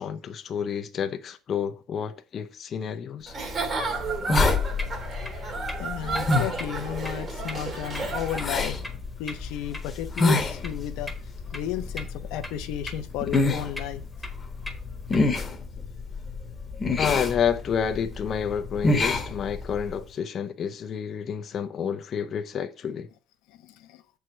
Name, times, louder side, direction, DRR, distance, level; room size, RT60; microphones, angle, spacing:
voice 1, 0.0-3.3 17.0-23.1, left 7 dB, 40° left, 0.7 m, -29 dB
Giggle / Chuckle chortle, 3.3-8.8, right 4 dB, 35° right, 2.4 m, -33 dB
sound 1, 3.4-20.0, left 3 dB, 20° left, 1.2 m, -29 dB
sound 2, 4.0-15.5, left 1 dB, 5° left, 1.4 m, -43 dB
voice 2, 5.4-8.9 9.2-11.1 11.5-14.0 23.5-24.0, left 10 dB, 85° left, 0.9 m, -33 dB
7.5 x 4.7 x 5.7 m
cardioid pair, 150°, 0 cm